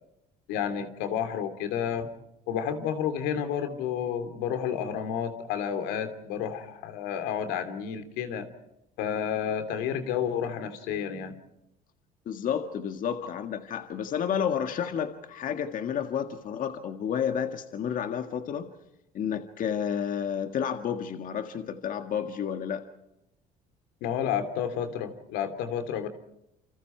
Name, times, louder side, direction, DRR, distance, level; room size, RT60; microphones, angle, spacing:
voice 1, 0.5-2.1 2.5-8.5 9.0-11.3 24.0-26.1, left 8 dB, 85° left, 8 dB, 3.1 m, -30 dB
voice 2, 12.3-18.7 19.1-22.8, left 8 dB, 55° left, 6 dB, 1.8 m, -31 dB
29.0 x 26.0 x 4.6 m, 0.86 s
cardioid pair, 100°, 17 cm